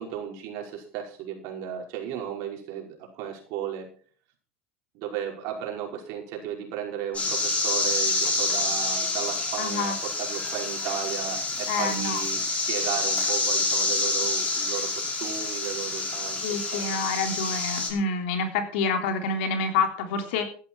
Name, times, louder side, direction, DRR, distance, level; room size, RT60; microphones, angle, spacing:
voice 1, 0.0-3.9 4.9-17.0, right 9 dB, 60° right, 1 dB, 5.4 m, -35 dB
sound 1, 7.1-17.9, left 3 dB, 20° left, 5.8 m, -27 dB
voice 2, 9.6-9.9 11.7-12.2 16.4-20.4, left 4 dB, 70° left, 5 dB, 3.3 m, -27 dB
14.5 x 11.5 x 4.7 m, 0.43 s
hypercardioid pair, 95°, 6 cm